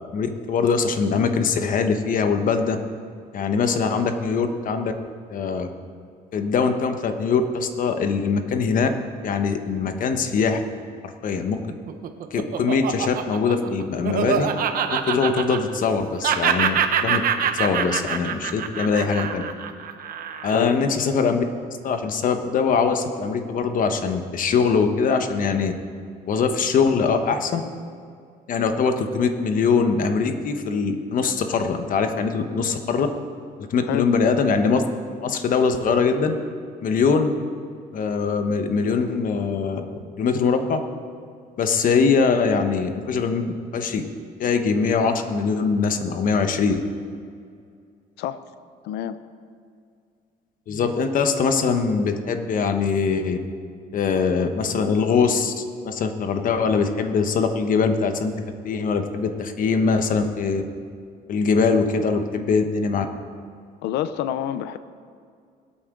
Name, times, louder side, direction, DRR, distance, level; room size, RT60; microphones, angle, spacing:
voice 1, 0.1-2.8 3.3-4.9 5.3-5.7 6.3-8.9 9.2-10.6 11.0-11.6 12.3-14.5 14.9-16.7 17.0-17.2 17.5-19.4 20.4-21.4 21.8-25.7 26.3-27.6 28.5-33.1 33.7-34.8 35.2-36.3 36.8-37.3 37.9-40.8 41.6-44.0 44.4-46.8 50.7-53.4 53.9-58.3 58.6-60.6 61.3-63.1, left 5 dB, 55° left, 7 dB, 1.2 m, -22 dB
Laughter, 11.7-16.0 16.2-20.7, right 8 dB, 60° right, 1.0 m, -25 dB
voice 2, 20.5-21.0 33.8-34.1 48.2-48.4 48.8-49.2 63.8-64.8, left 11 dB, 80° left, 13 dB, 0.6 m, -28 dB
22.0 x 8.6 x 3.8 m, 2.2 s
cardioid pair, 110°, 17 cm